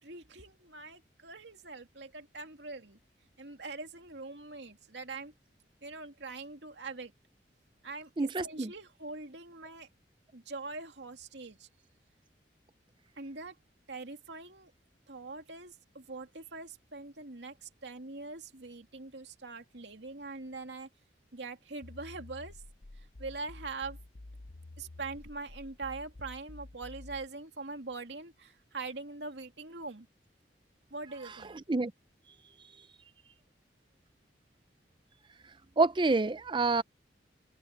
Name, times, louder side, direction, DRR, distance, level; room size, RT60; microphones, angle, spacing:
voice 1, 0.0-3.0 3.4-5.3 5.8-7.1 7.8-9.9 10.3-11.7 13.2-13.6 13.9-14.7 15.1-20.9 21.3-22.6 23.2-24.0 24.8-30.1 30.9-31.6, right 3 dB, 75° right, 2.6 m, -43 dB
voice 2, 8.2-8.7 31.7-31.9 35.8-36.8, right 3 dB, 30° right, 0.6 m, -27 dB
sound 1, 21.8-27.3, left 2 dB, 55° left, 0.9 m, -49 dB
head